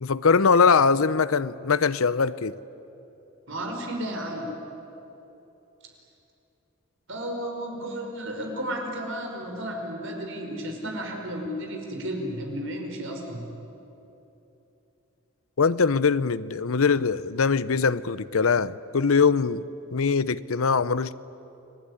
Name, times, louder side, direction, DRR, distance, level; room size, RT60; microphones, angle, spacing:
voice 1, 0.0-2.6 15.6-19.6 19.9-21.1, left 5 dB, 85° left, 0.7 m, -22 dB
voice 2, 3.5-4.5 7.1-13.5, equal, 70° right, 5.3 m, -33 dB
29.5 x 20.5 x 9.9 m
head